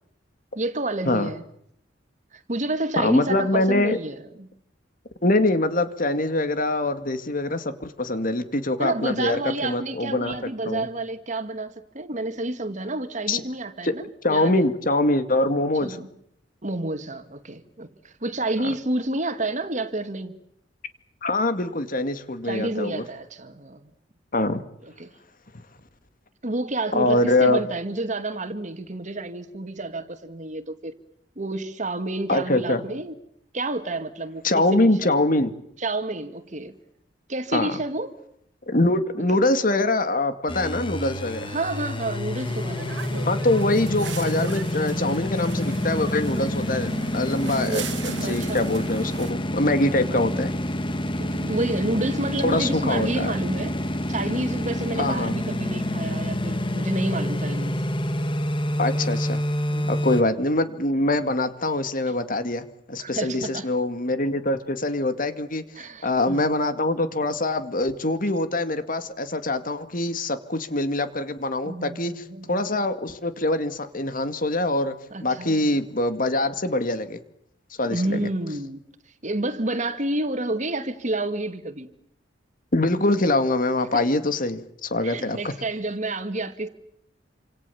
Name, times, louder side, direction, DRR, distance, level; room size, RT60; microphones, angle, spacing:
voice 1, 0.6-1.4 2.3-4.5 8.8-14.6 15.8-16.1 16.6-20.4 22.4-23.9 24.8-25.1 26.4-30.9 31.4-33.1 33.5-34.4 34.7-35.2 35.8-36.7 37.3-38.1 39.1-39.2 41.4-43.0 47.3-48.7 50.3-50.4 51.2-53.8 54.1-57.7 59.7-60.1 62.1-62.2 63.0-63.7 65.8-66.6 71.6-72.7 75.1-75.7 77.8-78.8 79.2-81.9 83.9-84.1 85.0-86.7, right 2 dB, 40° right, 2.2 m, -30 dB
voice 2, 3.0-4.0 5.2-10.3 10.6-10.9 13.3-13.4 13.8-13.9 14.2-16.0 21.2-23.0 24.3-24.6 26.9-27.6 32.3-32.8 34.4-35.5 37.5-37.8 38.7-41.5 43.3-50.5 52.4-53.4 55.0-55.4 58.8-59.4 59.9-75.0 75.2-77.2 77.8-78.3 82.7-85.5, left 2 dB, 50° left, 2.3 m, -24 dB
sound 1, 40.5-60.2, left 1 dB, 30° left, 2.3 m, -28 dB
sound 2, 42.4-49.3, right 4 dB, 85° right, 2.4 m, -38 dB
28.5 x 27.0 x 7.2 m
head